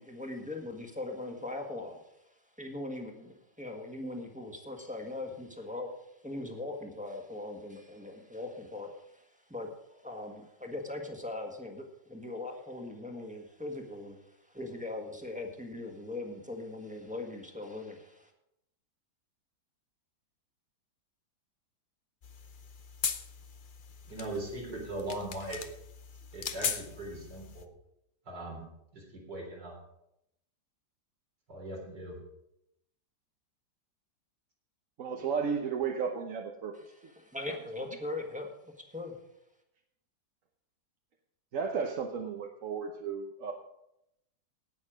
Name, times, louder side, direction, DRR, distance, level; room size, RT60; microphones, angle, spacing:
voice 1, 0.0-18.3 36.9-38.5 38.9-39.2, left 2 dB, 5° right, 2 dB, 1.4 m, -40 dB
sound 1, 22.2-27.7, left 6 dB, 60° left, 0.5 m, -39 dB
voice 2, 24.1-25.6 26.3-27.7 28.3-28.6 28.9-29.7 31.5-32.2, right 1 dB, 75° right, -1 dB, 4.3 m, -39 dB
voice 3, 35.0-36.7 37.0-37.1 37.5-37.6 41.5-43.5, right 6 dB, 55° right, 3 dB, 1.2 m, -34 dB
18.0 x 6.5 x 5.0 m, 0.81 s
omnidirectional pair, 1.9 m